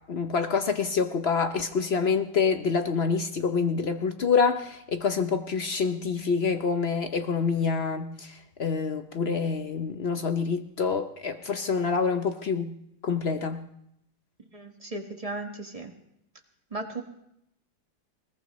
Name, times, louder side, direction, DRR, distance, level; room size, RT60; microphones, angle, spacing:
voice 1, 0.1-12.8 13.0-13.7, left 5 dB, 60° left, 8 dB, 0.7 m, -27 dB
voice 2, 14.5-15.9 16.7-17.0, right 2 dB, 20° right, 3 dB, 1.3 m, -36 dB
20.5 x 20.0 x 3.1 m, 0.78 s
omnidirectional pair, 1.9 m